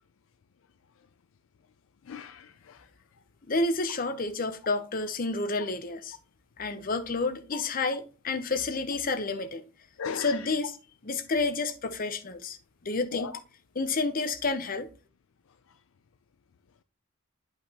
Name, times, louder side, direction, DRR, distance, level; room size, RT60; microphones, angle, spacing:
voice 1, 2.1-2.8 7.5-7.6 10.0-10.4 13.1-13.3, left 6 dB, 70° left, 0.4 m, -37 dB
voice 2, 3.5-6.2 6.6-9.7 10.1-10.8 11.0-12.6 12.8-13.3 13.7-14.9, left 3 dB, 45° left, 0.8 m, -30 dB
8.8 x 5.7 x 2.9 m
head